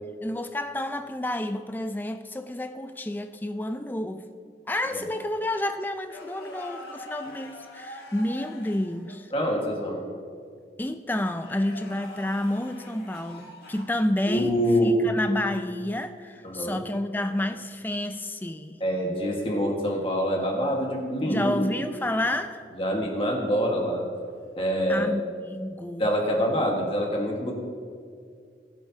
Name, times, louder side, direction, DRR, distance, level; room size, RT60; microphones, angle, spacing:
voice 1, 0.2-4.3 4.7-9.3 10.8-18.8 21.2-22.6 24.9-26.1, left 1 dB, 10° left, 8 dB, 0.4 m, -30 dB
sound 1, 6.1-9.2 11.3-14.0 16.4-16.6 18.8-19.2 22.0-22.3 24.3-24.6, left 1 dB, 65° left, 1.5 m, -44 dB
voice 2, 9.3-10.0 14.3-14.9 16.4-16.8 18.8-21.5 22.8-24.0 24.6-25.1 26.0-27.5, equal, 30° left, -1 dB, 1.6 m, -25 dB
20.5 x 7.8 x 2.8 m, 2.2 s
head